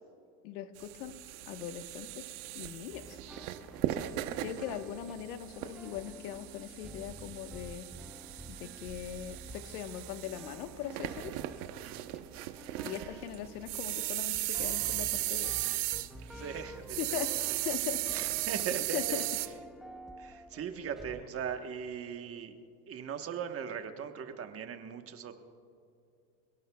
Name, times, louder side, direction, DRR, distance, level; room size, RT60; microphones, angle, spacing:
voice 1, 0.4-1.2 1.5-3.2 4.4-7.9 8.5-11.3 12.8-15.5 16.3-16.4 17.0-17.3 17.6-18.0 18.9-19.2, left 10 dB, 80° left, 8 dB, 1.3 m, -40 dB
sound 1, 0.8-16.6 16.9-19.5, right 16 dB, 80° right, 1.0 m, -37 dB
sound 2, 2.9-21.2, right 1 dB, ahead, 0.4 m, -50 dB
voice 2, 16.3-17.2 17.5-17.6 18.1-19.2 20.2-25.4, right 8 dB, 30° right, 6 dB, 1.2 m, -39 dB
28.0 x 17.0 x 2.3 m, 2.4 s
supercardioid pair, 130°, 45 cm